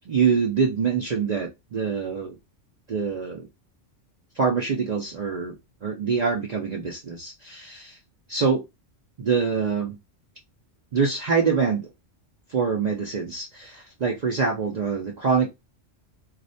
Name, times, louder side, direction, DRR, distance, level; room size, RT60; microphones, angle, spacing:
voice 1, 0.1-2.4 2.9-3.5 4.3-8.0 8.3-8.6 9.2-10.0 10.9-11.9 12.5-15.5, right 5 dB, 70° right, -1 dB, 0.4 m, -25 dB
2.4 x 2.1 x 2.5 m, 0.21 s
omnidirectional pair, 1.3 m